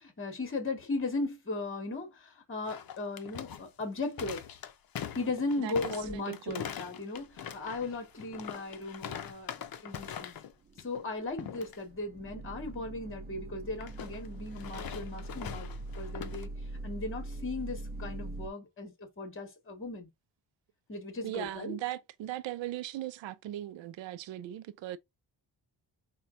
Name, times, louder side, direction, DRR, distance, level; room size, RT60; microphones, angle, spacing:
voice 1, 0.0-4.5 5.1-10.4 10.8-15.7 15.9-16.5 16.8-20.1 20.9-21.7, left 2 dB, 30° left, 1.3 m, -37 dB
sound 1, 2.6-10.5 10.8-11.1 11.4-11.8 13.8-16.5, left 9 dB, 55° left, 0.7 m, -42 dB
voice 2, 5.6-6.6 21.2-25.0, right 13 dB, 85° right, 0.5 m, -38 dB
sound 2, 7.3-8.0 8.2-8.6 8.9-9.0 9.3-9.4 10.1-18.5, right 2 dB, 25° right, 0.4 m, -42 dB
4.3 x 2.3 x 3.6 m
cardioid pair, 95°, 44 cm